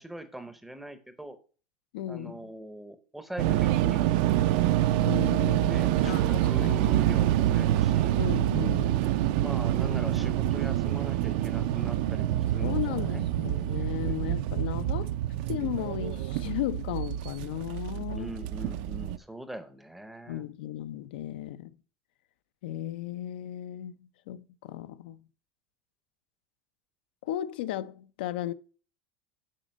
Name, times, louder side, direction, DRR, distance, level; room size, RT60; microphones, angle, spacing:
voice 1, 0.0-1.4 2.1-4.2 5.7-8.3 9.3-13.2 13.8-14.4 18.1-20.4, right 1 dB, 5° right, 0.6 m, -41 dB
voice 2, 1.9-2.5 5.1-6.8 8.2-9.0 12.6-15.2 15.5-18.3 20.3-21.7 22.6-23.9 24.3-25.2 27.2-28.5, left 13 dB, 75° left, 0.5 m, -35 dB
sound 1, 3.4-19.2, right 13 dB, 55° right, 0.5 m, -26 dB
7.5 x 5.1 x 5.1 m
supercardioid pair, 170°, 5 cm